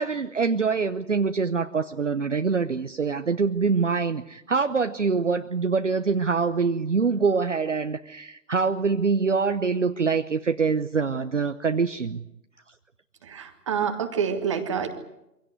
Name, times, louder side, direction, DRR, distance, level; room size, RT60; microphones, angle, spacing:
voice 1, 0.0-12.2, right 5 dB, 45° right, 8 dB, 0.9 m, -24 dB
voice 2, 13.2-14.9, right 7 dB, 20° right, 6 dB, 1.5 m, -27 dB
24.5 x 17.0 x 9.4 m, 0.88 s
figure-of-eight pair, 150°, 50 cm